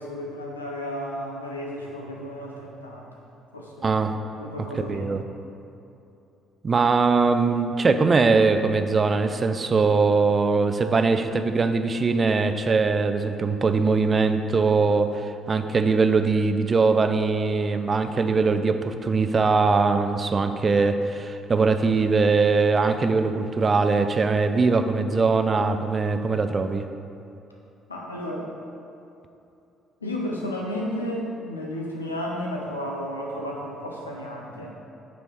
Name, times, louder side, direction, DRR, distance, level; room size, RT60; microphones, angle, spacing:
voice 1, 0.0-3.1 3.5-4.0 4.4-5.2 27.9-28.5 30.0-34.7, equal, 85° left, -1 dB, 0.8 m, -33 dB
voice 2, 3.8-4.1 4.9-5.2 6.6-26.8, right 4 dB, 35° right, 8 dB, 0.5 m, -21 dB
8.2 x 4.3 x 4.7 m, 2.8 s
figure-of-eight pair, 45°, 0 cm